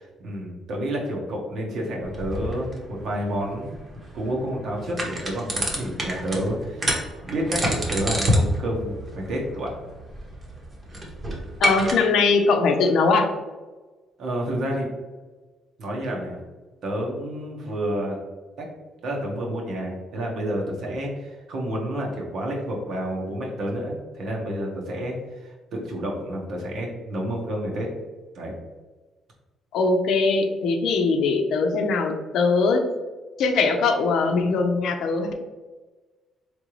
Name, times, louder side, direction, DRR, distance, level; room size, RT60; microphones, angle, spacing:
voice 1, 0.0-3.8 4.1-9.7 14.2-14.9 15.8-16.4 16.8-18.2 18.6-18.7 19.0-27.9 28.3-28.5, equal, 65° right, -1 dB, 1.2 m, -29 dB
sound 1, 2.0-11.9, equal, 30° right, 1.0 m, -29 dB
voice 2, 11.6-13.3 29.7-32.8 33.4-35.3, left 4 dB, 75° left, 5 dB, 0.6 m, -21 dB
3.8 x 3.3 x 3.1 m, 1.3 s
cardioid pair, 105°, 0 cm